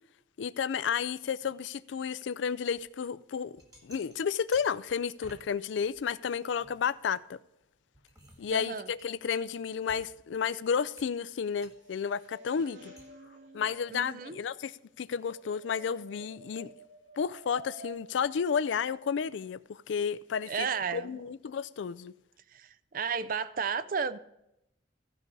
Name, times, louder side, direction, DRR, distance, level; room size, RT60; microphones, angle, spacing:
voice 1, 0.4-3.6 3.8-7.4 8.4-12.9 13.5-16.7 17.2-20.7 20.9-22.1, left 7 dB, 80° left, 0.4 m, -32 dB
sound 1, 2.8-2.9 3.4-5.5 5.8-7.4 7.8-10.5 11.0-11.3 11.6-11.8 13.0-13.1, right 1 dB, 20° right, 1.7 m, -56 dB
voice 2, 8.5-8.9 12.6-12.8 13.1-13.6 13.9-14.4 20.5-21.2 22.5-24.2, right 6 dB, 50° right, 0.4 m, -34 dB
sound 2, 11.5-17.9, right 1 dB, 80° right, 3.3 m, -53 dB
15.0 x 5.3 x 4.7 m
head